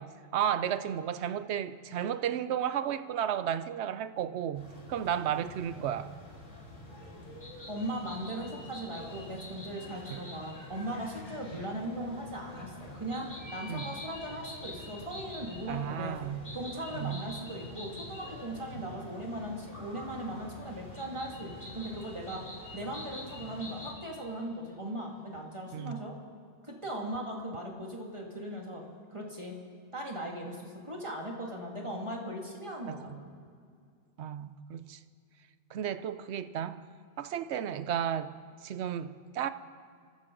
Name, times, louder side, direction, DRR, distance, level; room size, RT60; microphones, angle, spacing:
voice 1, 0.0-6.1 10.1-10.2 11.5-11.6 13.7-13.9 15.7-16.5 16.9-17.2 18.7-18.8 25.7-26.0 32.9-33.2 34.2-35.0 35.7-36.8 37.2-38.3 38.6-39.5, right 9 dB, 70° right, 0.9 m, -33 dB
sound 1, 4.5-23.9, left 1 dB, 75° left, 2.7 m, -48 dB
sound 2, 7.4-10.7 13.1-15.6 16.4-18.6 18.9-19.0 21.0-24.2, left 1 dB, 40° left, 4.2 m, -47 dB
voice 2, 7.7-16.2 16.5-22.4 22.7-26.1 26.6-28.8 29.1-29.6 29.9-33.3, right 1 dB, 25° right, 2.2 m, -38 dB
26.0 x 14.0 x 3.9 m
omnidirectional pair, 1.2 m